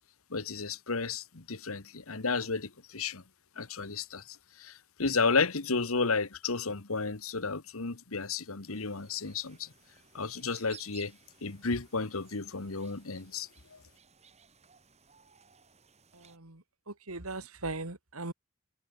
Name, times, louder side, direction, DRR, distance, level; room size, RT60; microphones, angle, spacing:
voice 1, 0.3-3.2 3.6-9.7 10.1-13.8, left 4 dB, 80° left, 1.5 m, -33 dB
sound 1, 8.7-16.4, right 7 dB, 30° right, 7.2 m, -58 dB
voice 2, 16.1-18.3, right 2 dB, 90° right, 3.1 m, -39 dB
head